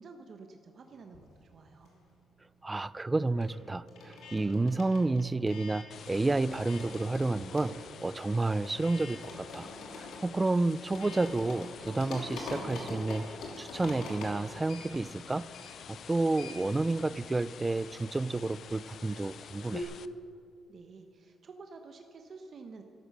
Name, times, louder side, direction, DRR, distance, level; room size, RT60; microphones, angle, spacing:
voice 1, 0.0-1.9 20.7-22.8, right 4 dB, 55° right, 4 dB, 1.0 m, -50 dB
sound 1, 1.0-2.3 2.5-19.8, left 2 dB, 80° left, 2.9 m, -45 dB
voice 2, 2.6-9.7 10.0-13.3 13.6-15.5 15.9-19.9, right 2 dB, 20° right, 19 dB, 0.4 m, -30 dB
sound 2, 5.9-20.1, left 8 dB, 60° left, 0.5 m, -49 dB
13.0 x 11.5 x 6.6 m, 2.4 s
cardioid pair, 90°, 0 cm